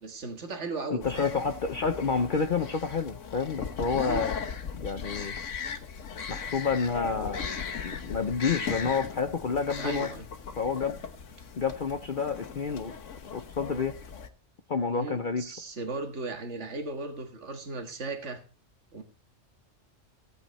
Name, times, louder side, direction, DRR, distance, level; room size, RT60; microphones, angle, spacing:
voice 1, 0.0-1.3 3.9-4.3 9.8-10.3 14.9-18.4 18.9-19.0, right 3 dB, 65° right, 5 dB, 2.0 m, -36 dB
voice 2, 0.9-4.4 4.8-5.3 6.3-7.5 7.8-10.1 10.6-11.0 11.6-12.9 13.3-14.0 14.7-15.4, left 5 dB, 45° left, 7 dB, 0.8 m, -29 dB
sound 1, 1.0-14.3, left 6 dB, 75° left, 1.5 m, -38 dB
15.5 x 9.1 x 4.2 m, 0.35 s
omnidirectional pair, 1.3 m